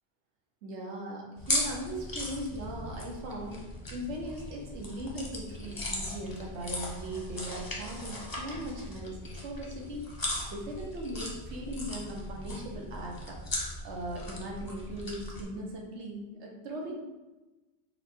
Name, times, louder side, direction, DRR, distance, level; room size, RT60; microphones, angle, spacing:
voice 1, 0.6-3.6 3.9-10.0 10.5-13.4 13.8-16.9, right 1 dB, 90° right, -1 dB, 1.1 m, -39 dB
sound 1, 1.4-15.4, left 1 dB, 25° left, 0.5 m, -38 dB
4.2 x 2.2 x 4.2 m, 1.1 s
omnidirectional pair, 1.1 m